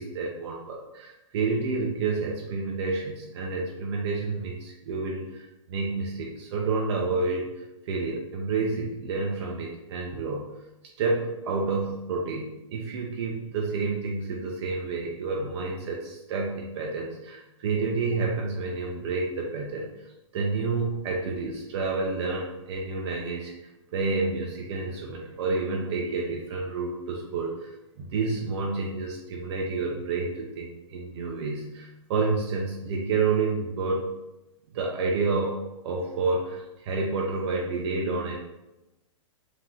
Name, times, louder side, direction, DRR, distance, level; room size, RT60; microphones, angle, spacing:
voice 1, 0.0-7.5 7.8-10.5 11.0-20.1 20.3-27.7 28.0-34.1 34.7-38.3, right 3 dB, 55° right, -2 dB, 0.8 m, -29 dB
3.8 x 3.0 x 4.4 m, 0.98 s
hypercardioid pair, 130°, 17 cm